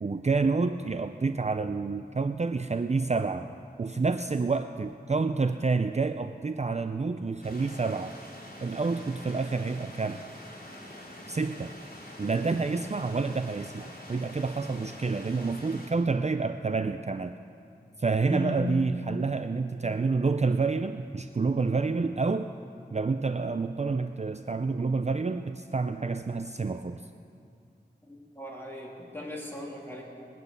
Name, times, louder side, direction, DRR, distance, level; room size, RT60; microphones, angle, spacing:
voice 1, 0.0-3.5 3.8-8.2 8.6-10.2 11.3-11.7 12.2-17.4 18.0-22.5 22.9-27.1, right 4 dB, 40° right, 9 dB, 0.4 m, -28 dB
sound 1, 7.4-15.9, left 1 dB, 55° left, 3.6 m, -45 dB
voice 2, 18.2-18.8 28.0-30.0, left 1 dB, 10° left, -3 dB, 3.2 m, -36 dB
21.0 x 9.4 x 6.7 m, 2.4 s
wide cardioid pair, 60°, 18 cm